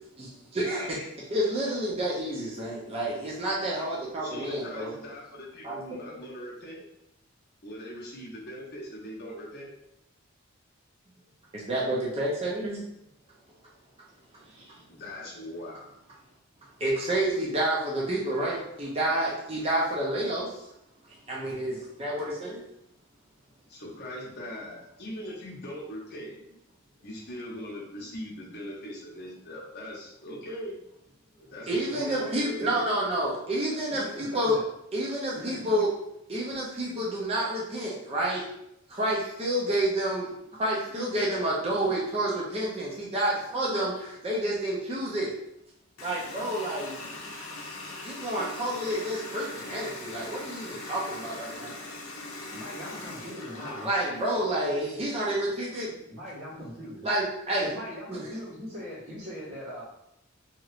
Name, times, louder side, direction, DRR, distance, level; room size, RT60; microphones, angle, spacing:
voice 1, 0.2-4.9 5.6-6.2 11.5-12.8 14.6-14.8 16.8-20.6 21.1-22.6 31.7-34.5 34.9-35.9 36.3-38.4 38.9-40.3 40.6-45.3 46.0-47.0 48.0-51.7 53.8-55.9 57.0-57.7, right 1 dB, 30° right, -5 dB, 0.5 m, -29 dB
voice 2, 4.2-6.8 7.6-9.7 14.9-15.9 23.7-26.4 27.0-30.8 31.4-32.3 32.5-32.8, equal, 50° left, -3 dB, 0.8 m, -40 dB
voice 3, 31.9-32.8 33.9-34.6 35.3-35.6 52.5-53.9 56.1-57.0 57.6-59.8, equal, 80° right, -8 dB, 1.4 m, -40 dB
Water tap faucet, 46.0-54.5, left 2 dB, 80° left, 0.6 m, -41 dB
3.0 x 2.8 x 2.4 m, 0.81 s
head